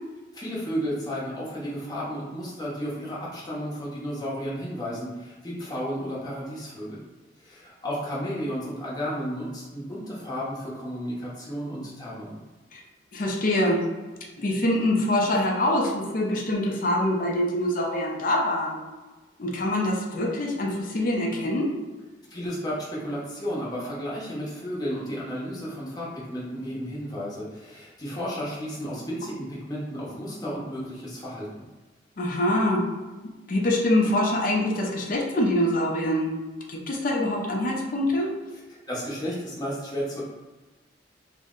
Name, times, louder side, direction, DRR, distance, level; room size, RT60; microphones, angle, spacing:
voice 1, 0.3-7.0 7.4-12.4 22.3-31.5 38.9-40.2, equal, 20° left, -6 dB, 0.8 m, -33 dB
voice 2, 13.1-13.8 14.4-18.8 19.4-21.7 32.2-32.8 33.5-36.3 36.7-38.4, left 1 dB, 50° left, 0 dB, 0.5 m, -24 dB
2.7 x 2.1 x 3.6 m, 1.2 s
head